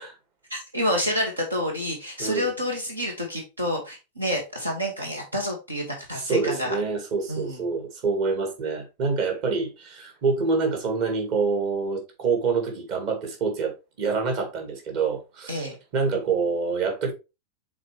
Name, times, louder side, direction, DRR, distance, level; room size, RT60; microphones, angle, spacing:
voice 1, 0.5-6.8 7.3-7.7 15.5-15.8, equal, 80° right, 1.7 m, -28 dB
voice 2, 2.2-2.5 6.2-17.1, right 4 dB, 45° right, 2.1 m, -26 dB
7.3 x 4.1 x 3.2 m
figure-of-eight pair, 90°, 0 cm